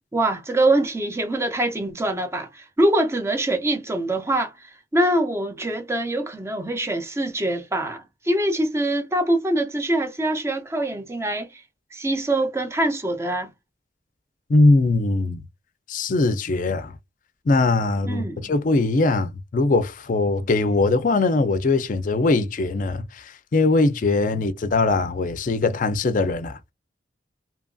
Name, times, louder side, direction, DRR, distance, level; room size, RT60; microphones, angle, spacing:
voice 1, 0.1-11.6 11.9-13.5 18.0-18.5 24.3-24.4, right 1 dB, 15° right, 0.5 m, -24 dB
voice 2, 14.5-15.4 15.9-16.9 17.5-26.7, left 3 dB, 45° left, 0.4 m, -21 dB
2.8 x 2.5 x 2.3 m
head